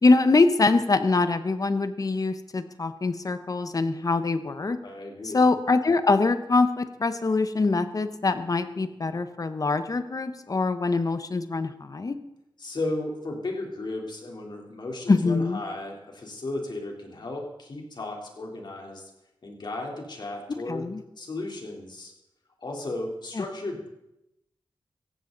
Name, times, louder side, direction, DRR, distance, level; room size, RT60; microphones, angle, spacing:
voice 1, 0.0-4.8 5.3-12.2 15.1-15.6 20.7-21.0 23.3-23.4, left 3 dB, 45° left, 11 dB, 1.0 m, -23 dB
voice 2, 4.8-5.5 12.6-19.1 19.4-22.1 22.6-23.9, left 2 dB, 60° left, 0 dB, 3.6 m, -35 dB
18.0 x 14.5 x 4.0 m, 0.87 s
wide cardioid pair, 85°, 9 cm